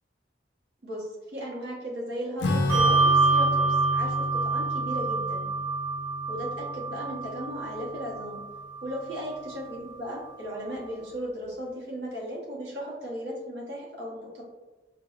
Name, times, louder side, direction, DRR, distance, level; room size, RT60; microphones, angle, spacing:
voice 1, 0.8-5.4 6.3-8.4 8.8-14.4, equal, 65° right, -5 dB, 0.9 m, -36 dB
Acoustic guitar / Strum, 2.4-8.3, left 2 dB, 70° left, 0.4 m, -31 dB
Bell, 2.7-9.6, right 4 dB, 10° right, 0.9 m, -27 dB
4.6 x 2.0 x 2.3 m, 1.1 s
head